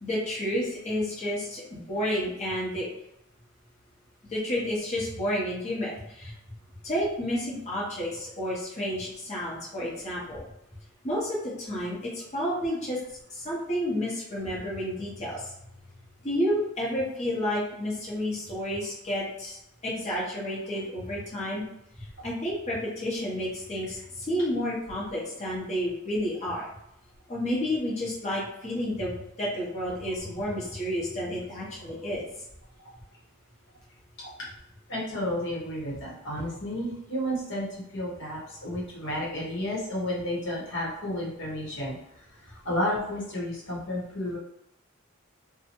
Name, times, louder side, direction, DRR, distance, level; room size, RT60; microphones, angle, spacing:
voice 1, 0.0-2.9 4.3-5.9 6.2-6.3 6.8-10.4 11.0-13.0 13.4-15.4 16.2-19.6 19.8-21.6 22.2-24.0 24.3-26.6 27.3-32.2, equal, 35° left, -6 dB, 1.0 m, -30 dB
voice 2, 34.9-42.0 42.6-44.4, left 1 dB, 60° left, -5 dB, 1.1 m, -32 dB
2.7 x 2.3 x 2.9 m, 0.81 s
head